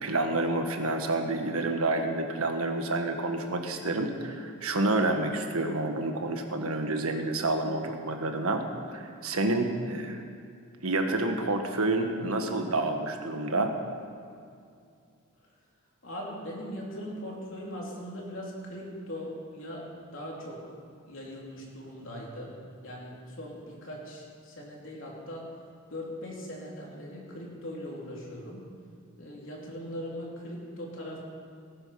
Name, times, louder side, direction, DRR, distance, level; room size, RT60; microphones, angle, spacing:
voice 1, 0.0-8.7 8.9-10.2 10.8-13.7, right 2 dB, 90° right, 5 dB, 1.5 m, -29 dB
voice 2, 16.0-20.6 21.0-22.5 22.8-25.5 25.9-28.7 29.2-31.2, equal, 65° left, -3 dB, 3.4 m, -40 dB
19.0 x 10.0 x 5.8 m, 2.4 s
head